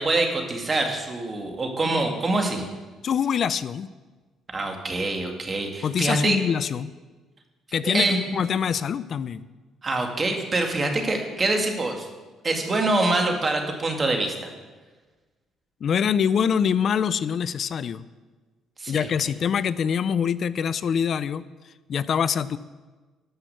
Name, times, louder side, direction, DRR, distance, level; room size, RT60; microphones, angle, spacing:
voice 1, 0.0-2.7 4.5-6.4 7.8-8.2 9.8-12.1 12.4-14.5 18.8-19.1, right 2 dB, 35° right, 3 dB, 2.2 m, -25 dB
voice 2, 3.0-3.9 5.8-6.9 7.7-9.5 15.8-18.0 18.9-21.5 21.9-22.6, left 7 dB, 55° left, 16 dB, 0.4 m, -24 dB
12.0 x 5.9 x 8.0 m, 1.3 s
supercardioid pair, 60°, 0 cm